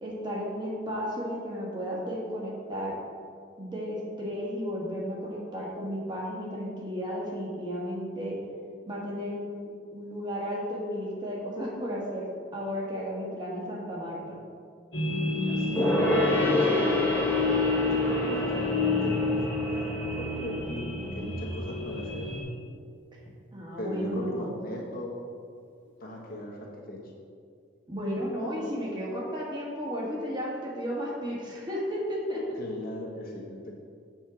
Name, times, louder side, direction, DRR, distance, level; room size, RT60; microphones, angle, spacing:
voice 1, 0.0-3.0 3.6-8.4 8.9-14.4 23.5-24.5 27.9-32.6, equal, 25° right, -4 dB, 1.4 m, -33 dB
sound 1, 14.9-22.4, left 3 dB, 75° left, 1.7 m, -29 dB
voice 2, 15.5-16.9 17.8-19.4 19.7-22.3 23.8-25.2 25.8-27.1 32.6-33.7, left 1 dB, 50° left, -2 dB, 1.2 m, -38 dB
Gong, 15.7-21.6 21.9-22.0, left 1 dB, 10° left, 1.1 m, -29 dB
7.3 x 4.5 x 6.1 m, 2.2 s
head